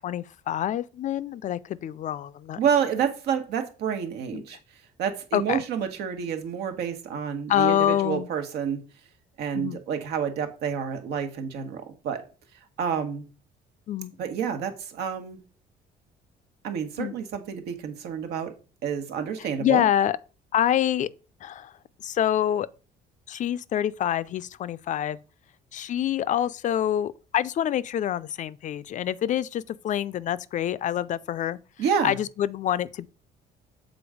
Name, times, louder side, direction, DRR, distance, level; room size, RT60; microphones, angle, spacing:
voice 1, 0.0-2.6 4.3-4.4 5.3-5.6 7.5-8.3 9.5-9.8 13.9-14.1 17.0-17.1 19.6-20.2 20.5-21.1 21.4-21.7 22.0-22.7 23.3-25.2 25.7-31.6 32.0-33.1, left 11 dB, 50° left, 0.4 m, -26 dB
voice 2, 2.6-4.6 5.0-8.8 9.4-12.2 12.8-13.2 14.2-15.4 16.6-18.5 18.8-19.9 31.8-32.2, right 7 dB, 80° right, 1.3 m, -29 dB
7.0 x 3.9 x 4.9 m
cardioid pair, 110°, 17 cm